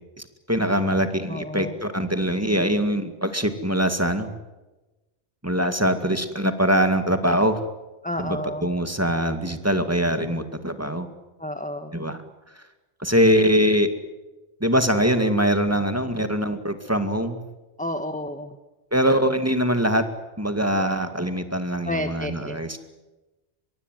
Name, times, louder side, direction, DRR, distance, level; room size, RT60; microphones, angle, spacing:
voice 1, 0.2-4.3 5.4-7.6 8.2-11.1 11.9-12.2 12.6-12.7 13.0-13.9 14.6-17.4 18.9-20.0 20.4-22.8, equal, 15° right, 8 dB, 2.1 m, -23 dB
voice 2, 1.3-1.8 8.0-8.7 11.4-12.0 17.8-18.6 21.9-22.6, left 1 dB, 5° left, 8 dB, 1.3 m, -31 dB
24.5 x 22.5 x 9.3 m, 1.1 s
omnidirectional pair, 1.1 m